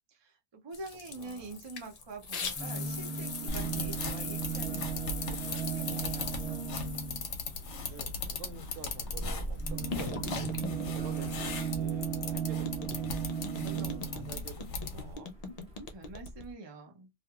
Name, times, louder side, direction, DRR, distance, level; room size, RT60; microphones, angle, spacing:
voice 1, 0.1-6.4 15.9-17.1, right 2 dB, 35° right, 0.5 m, -46 dB
sound 1, 0.7-8.9 9.4-12.3 12.6-16.5, left 4 dB, 55° left, 0.4 m, -42 dB
voice 2, 1.1-1.6 7.5-12.8 13.6-15.3, right 6 dB, 85° right, 1.0 m, -49 dB
sound 2, 2.4-7.3 9.0-14.4 15.4-15.5 15.7-15.8, right 7 dB, 5° right, 0.7 m, -36 dB
sound 3, 3.5-15.1, left 4 dB, 70° left, 1.0 m, -39 dB
2.8 x 2.4 x 2.3 m
omnidirectional pair, 1.3 m